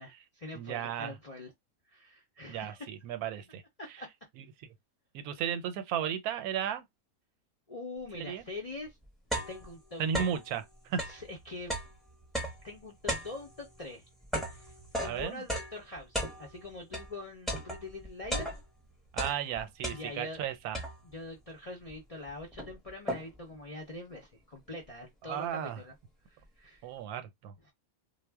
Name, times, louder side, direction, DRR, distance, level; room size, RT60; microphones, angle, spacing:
voice 1, 0.0-1.5 1.9-2.9 3.8-4.1 7.7-9.0 9.5-10.0 11.1-11.8 12.6-14.0 14.4-14.7 15.0-18.5 19.9-20.4 21.1-25.9 26.3-26.9, left 2 dB, 55° left, 0.4 m, -44 dB
voice 2, 0.5-1.2 2.5-4.0 4.4-4.7 5.1-6.9 8.1-8.5 10.0-11.0 15.0-15.4 19.1-20.8 25.2-25.8 26.8-27.5, right 8 dB, 90° right, 1.1 m, -35 dB
sound 1, 8.4-8.5 8.9-10.5 10.9-17.1 17.5-18.8 19.1-20.4 20.7-21.3 21.9-22.0 22.3-23.5, equal, ahead, 0.5 m, -37 dB
2.4 x 2.0 x 3.4 m
omnidirectional pair, 1.5 m